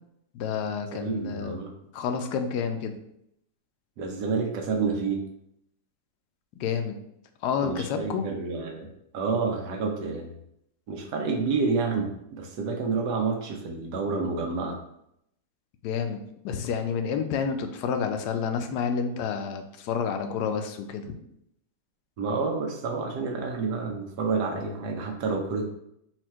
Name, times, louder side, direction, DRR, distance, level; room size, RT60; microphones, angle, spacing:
voice 1, 0.3-1.6 1.9-3.0 6.6-6.9 7.4-8.3 15.8-21.1, left 6 dB, 80° left, 6 dB, 1.1 m, -29 dB
voice 2, 0.9-1.7 4.0-5.2 7.6-10.4 10.9-14.8 22.2-25.7, right 4 dB, 80° right, 2 dB, 1.3 m, -29 dB
4.4 x 2.4 x 4.4 m, 0.77 s
omnidirectional pair, 1.7 m